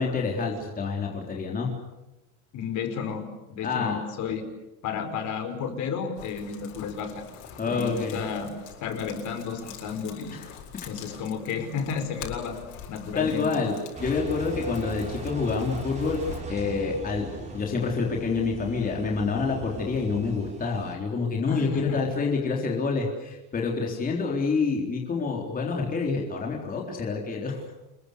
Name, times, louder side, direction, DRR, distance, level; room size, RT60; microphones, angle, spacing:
voice 1, 0.0-1.7 3.6-4.0 7.6-8.2 10.3-10.5 13.1-16.2 16.5-27.6, left 4 dB, 20° left, 0 dB, 3.9 m, -27 dB
voice 2, 2.5-4.5 4.8-7.2 7.7-8.5 8.8-10.4 10.8-12.6 12.9-13.6 21.5-22.0, left 6 dB, 40° left, 7 dB, 4.9 m, -32 dB
sound 1, 6.2-16.4, left 8 dB, 65° left, 7.5 m, -45 dB
Engine, 13.9-20.9, right 3 dB, 15° right, 6.0 m, -39 dB
28.5 x 22.0 x 8.3 m, 1.0 s
cardioid pair, 155°, 43 cm